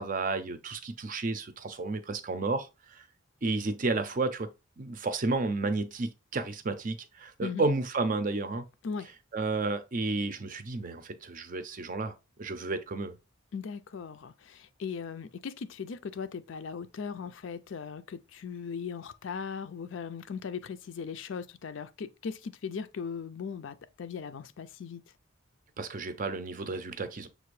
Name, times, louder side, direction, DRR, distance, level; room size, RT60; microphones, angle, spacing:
voice 1, 0.0-3.1 3.4-8.7 9.3-13.2 25.8-27.3, right 3 dB, 40° right, 0.5 m, -32 dB
voice 2, 13.5-25.0, left 6 dB, 65° left, 0.4 m, -38 dB
6.6 x 2.5 x 3.1 m
head